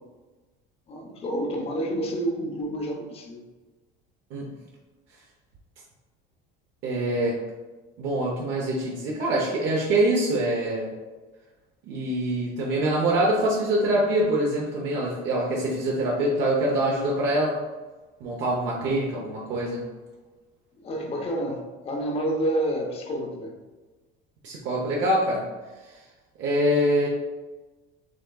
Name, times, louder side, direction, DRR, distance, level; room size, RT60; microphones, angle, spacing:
voice 1, 0.9-3.4 20.8-23.5, right 1 dB, 30° left, 2 dB, 0.7 m, -29 dB
voice 2, 6.8-7.4 8.0-10.9 11.9-17.6 18.2-19.8 24.4-25.4 26.4-27.1, right 1 dB, 60° right, -3 dB, 0.8 m, -24 dB
6.3 x 3.6 x 2.3 m, 1.2 s
cardioid pair, 150°, 21 cm